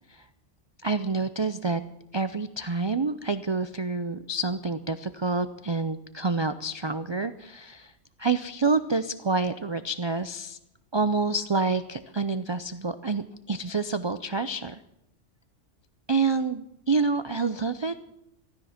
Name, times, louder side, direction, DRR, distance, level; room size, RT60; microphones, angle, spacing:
voice 1, 0.8-1.8 2.1-7.9 8.2-10.6 10.9-14.8 16.1-18.0, right 3 dB, 50° right, 11 dB, 0.3 m, -28 dB
15.0 x 13.5 x 5.8 m, 0.83 s
omnidirectional pair, 1.3 m